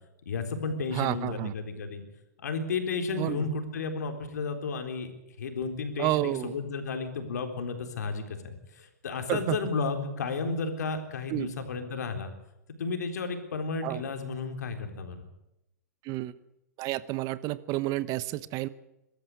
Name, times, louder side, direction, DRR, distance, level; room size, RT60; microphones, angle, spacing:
voice 1, 0.3-2.0 2.4-5.1 5.4-12.3 12.8-15.3, left 4 dB, 75° left, 6 dB, 3.9 m, -33 dB
voice 2, 0.9-1.5 3.2-3.4 6.0-6.5 9.3-9.6 11.3-11.5 13.8-14.0 16.0-16.3 16.8-18.7, right 16 dB, 40° right, 17 dB, 1.0 m, -30 dB
23.5 x 13.5 x 9.7 m, 0.88 s
hypercardioid pair, 110°, 9 cm